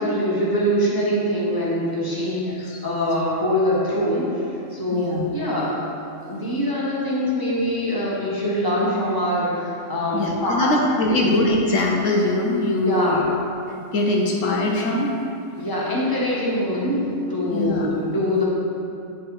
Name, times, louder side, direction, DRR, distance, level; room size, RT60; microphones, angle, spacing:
voice 1, 0.0-4.3 4.7-5.8 6.2-10.8 11.0-11.3 12.8-13.3 15.6-18.5, equal, 15° left, -5 dB, 1.3 m, -23 dB
voice 2, 2.5-2.8 4.9-5.2 10.1-13.2 13.9-15.1 17.5-17.9, left 2 dB, 75° left, -1 dB, 1.2 m, -22 dB
8.2 x 4.6 x 4.7 m, 2.5 s
omnidirectional pair, 1.3 m